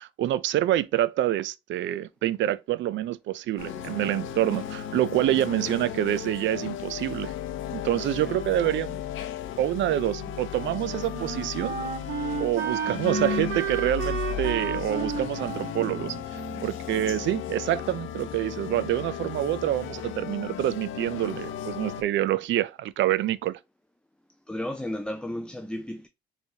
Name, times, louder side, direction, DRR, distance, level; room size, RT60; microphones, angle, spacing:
voice 1, 0.0-7.3 7.7-9.0 9.6-11.8 12.4-23.6, right 13 dB, 70° right, 0.4 m, -27 dB
sound 1, 3.6-22.0, left 10 dB, 80° left, 0.6 m, -35 dB
voice 2, 8.0-8.4 24.5-26.1, left 1 dB, 5° left, 0.4 m, -34 dB
Wind instrument woodwind instrument, 10.1-17.4, right 7 dB, 90° right, 0.8 m, -33 dB
4.3 x 3.2 x 2.8 m
cardioid pair, 90°, 20 cm